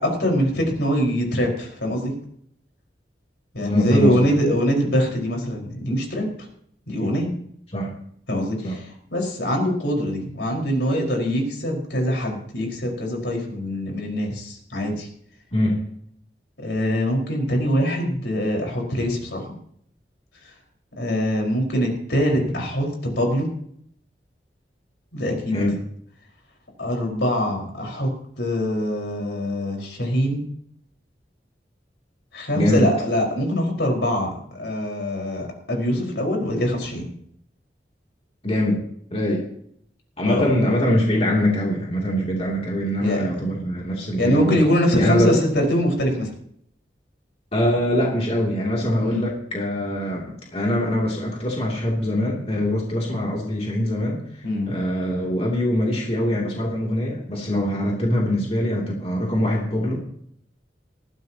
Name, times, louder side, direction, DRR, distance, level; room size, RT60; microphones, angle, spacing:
voice 1, 0.0-2.1 3.5-6.3 6.9-7.3 8.3-15.1 16.6-19.5 20.4-20.5 21.0-23.5 25.1-25.6 26.8-28.1 28.4-30.4 32.3-37.1 40.3-40.5 43.0-43.6 44.2-46.3 49.0-49.3 54.4-54.7, equal, 80° left, 0 dB, 4.9 m, -23 dB
voice 2, 3.7-4.2 7.7-7.9 8.6-8.7 15.5-15.8 22.5-22.6 25.5-25.8 32.5-32.9 38.4-38.8 39.1-39.5 40.2-44.6 45.0-45.3 47.5-54.2 54.7-60.0, left 1 dB, 35° left, -2 dB, 2.8 m, -23 dB
20.0 x 15.0 x 2.9 m, 0.65 s
head